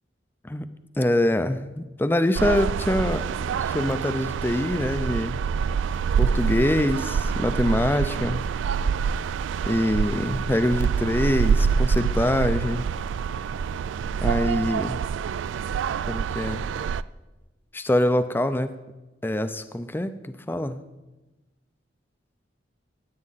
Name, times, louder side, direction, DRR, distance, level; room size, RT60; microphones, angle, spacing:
voice 1, 1.0-3.3 3.5-5.4 6.2-8.4 9.7-12.8 14.2-15.0 16.1-16.6 17.7-18.7 19.2-20.8, left 1 dB, 10° left, 11 dB, 0.4 m, -24 dB
sound 1, 2.3-17.0, right 6 dB, 85° right, 0.3 m, -26 dB
17.0 x 8.7 x 4.1 m, 1.1 s
head